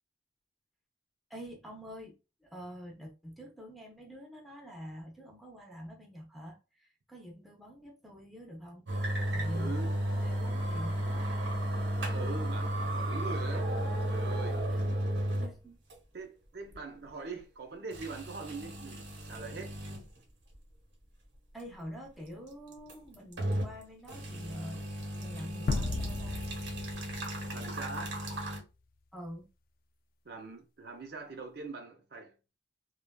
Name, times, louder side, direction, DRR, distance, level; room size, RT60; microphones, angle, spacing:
voice 1, 1.3-8.9 9.3-11.3 14.7-14.9 15.4-15.8 21.5-24.8 25.2-26.4 29.1-29.5, equal, ahead, 0.7 m, -46 dB
sound 1, 8.9-15.6 15.9-16.0 16.7-16.8 17.9-20.1 20.5-20.6 22.7-23.8 24.1-28.6, right 1 dB, 85° right, 1.0 m, -34 dB
voice 2, 9.5-10.0 12.1-14.6 16.1-19.8 27.5-28.2 30.2-32.3, right 3 dB, 65° right, 0.6 m, -42 dB
sound 2, 25.7-28.1, left 3 dB, 55° left, 0.3 m, -35 dB
3.2 x 2.4 x 2.3 m
head